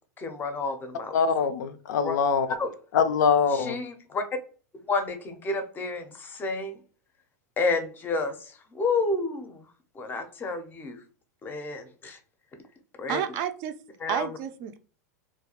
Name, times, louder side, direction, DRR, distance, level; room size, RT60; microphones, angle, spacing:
voice 1, 0.2-1.2 2.0-2.2 2.5-2.7 3.5-4.2 4.9-6.8 7.6-9.7 9.9-11.0 11.4-12.2 13.0-13.2 14.0-14.4, left 3 dB, 20° left, 7 dB, 0.5 m, -30 dB
voice 2, 1.1-2.5 2.9-3.8, left 6 dB, 80° left, 10 dB, 0.4 m, -23 dB
voice 3, 13.1-13.7 14.1-14.8, right 9 dB, 45° right, 9 dB, 0.4 m, -30 dB
2.3 x 2.2 x 2.8 m, 0.39 s
supercardioid pair, 130°, 9 cm